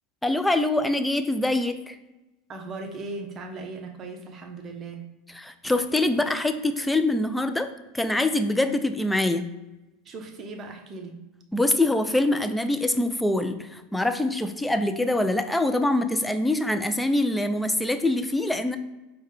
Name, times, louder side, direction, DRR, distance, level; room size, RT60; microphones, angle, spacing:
voice 1, 0.2-2.0 5.4-7.7 7.9-9.5 11.5-18.8, left 2 dB, 5° left, 9 dB, 0.3 m, -24 dB
voice 2, 2.5-5.0 10.0-11.2, right 3 dB, 35° right, 3 dB, 0.7 m, -38 dB
4.6 x 2.2 x 3.1 m, 1.0 s
hypercardioid pair, 105°, 0 cm